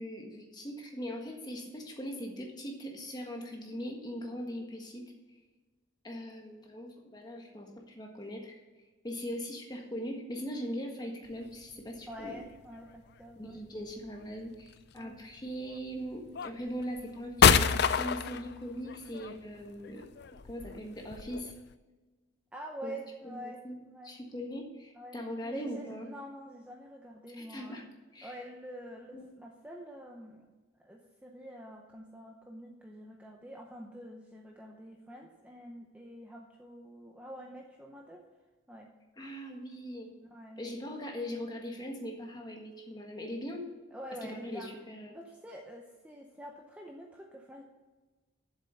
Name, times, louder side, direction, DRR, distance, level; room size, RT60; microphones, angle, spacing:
voice 1, 0.0-5.1 6.0-8.5 9.0-12.4 13.3-20.0 20.5-21.5 22.8-23.0 23.2-23.8 24.0-26.1 27.3-27.8 28.1-28.4 29.1-29.2 39.2-40.1 40.6-43.7 44.2-45.1, equal, 20° left, 1 dB, 1.5 m, -40 dB
sound 1, 11.3-11.4 12.1-12.7 14.1-14.7 15.6-15.8 16.4-21.7, left 7 dB, 50° left, 0.4 m, -28 dB
voice 2, 12.1-13.6 14.9-15.2 22.5-24.2 24.9-27.8 28.2-30.5 30.8-38.2 38.7-38.9 40.2-40.6 43.9-44.7 45.1-47.6, equal, 5° right, 0 dB, 0.7 m, -46 dB
7.4 x 7.3 x 7.0 m, 1.3 s
head